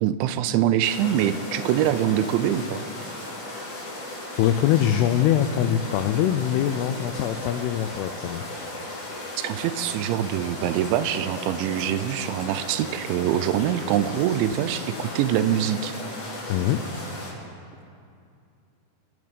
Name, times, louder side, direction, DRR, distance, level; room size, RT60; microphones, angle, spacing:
voice 1, 0.0-2.8 9.4-15.9, right 10 dB, 85° right, 12 dB, 3.0 m, -24 dB
sound 1, 0.8-17.3, left 2 dB, 50° left, 5.8 m, -36 dB
voice 2, 4.4-8.5 16.5-16.9, left 10 dB, 90° left, 9 dB, 2.3 m, -23 dB
28.5 x 9.6 x 5.3 m, 2.4 s
omnidirectional pair, 5.3 m